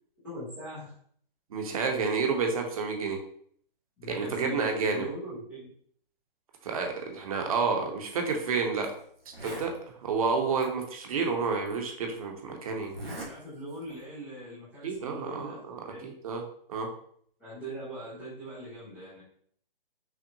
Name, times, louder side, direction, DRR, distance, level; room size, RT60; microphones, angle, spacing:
voice 1, 0.2-0.9 4.0-5.7 13.2-15.6 15.8-16.1 17.4-19.2, equal, 5° left, -19 dB, 0.3 m, -41 dB
voice 2, 1.5-3.2 4.1-5.1 6.6-8.9 9.4-12.9 14.8-16.4 16.7-16.9, right 5 dB, 40° right, 2 dB, 0.7 m, -30 dB
Zipper (clothing), 8.2-8.3 8.8-8.9 9.2-9.8 10.6-10.7 11.7-11.8 12.8-13.3 13.7-14.0, right 1 dB, 90° right, 1.4 m, -41 dB
5.7 x 2.1 x 2.6 m, 0.62 s
hypercardioid pair, 145°, 29 cm